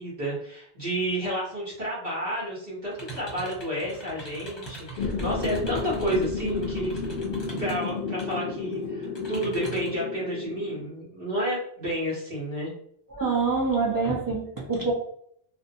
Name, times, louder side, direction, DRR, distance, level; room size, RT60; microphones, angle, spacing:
voice 1, 0.0-7.0 7.6-12.7, right 1 dB, 60° right, -7 dB, 1.2 m, -31 dB
sound 1, 2.9-8.4 8.7-10.0, right 2 dB, 30° left, 0.7 m, -42 dB
sound 2, 5.0-10.9, left 4 dB, 65° left, 0.7 m, -32 dB
voice 2, 13.1-14.9, right 4 dB, 25° right, -4 dB, 0.6 m, -26 dB
2.7 x 2.1 x 2.6 m, 0.66 s
omnidirectional pair, 1.1 m